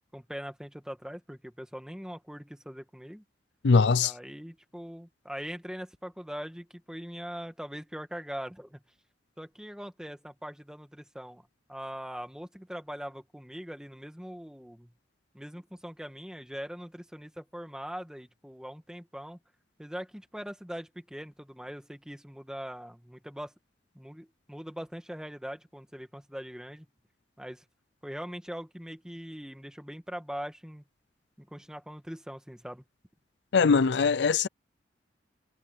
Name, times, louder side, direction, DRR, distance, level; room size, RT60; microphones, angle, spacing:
voice 1, 0.1-3.2 4.0-8.8 9.4-11.4 11.7-14.9 15.3-19.4 19.8-23.5 23.9-26.9 27.4-27.6 28.0-30.8 31.4-32.8, equal, 5° right, 1.9 m, -41 dB
voice 2, 3.6-4.1 33.5-34.5, left 5 dB, 75° left, 0.5 m, -21 dB
head